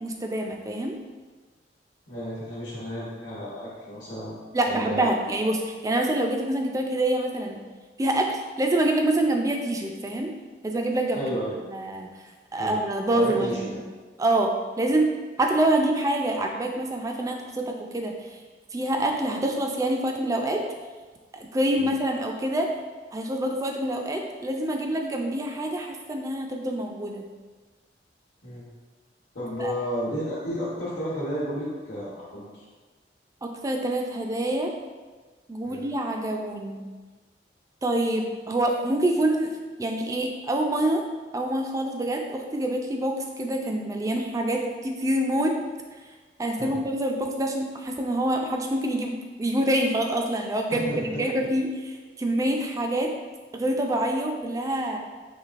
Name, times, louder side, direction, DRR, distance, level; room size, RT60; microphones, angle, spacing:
voice 1, 0.0-1.0 4.5-7.6 8.0-10.3 10.6-11.2 11.7-12.1 12.5-13.7 14.2-15.1 15.4-18.4 18.7-20.6 21.3-22.7 23.1-27.2 29.6-29.7 33.4-34.7 35.5-36.8 37.8-39.5 39.8-41.0 41.3-45.6 46.4-51.7 52.2-53.1 53.5-55.0, right 1 dB, 20° right, 3 dB, 0.3 m, -26 dB
voice 2, 2.1-4.4 4.7-5.2 11.1-11.5 12.5-12.8 13.1-13.6 21.8-21.9 28.4-28.6 29.3-32.6 35.6-35.8 46.6-46.8 50.7-51.5, equal, 70° left, -10 dB, 1.0 m, -32 dB
4.5 x 3.0 x 2.4 m, 1.4 s
head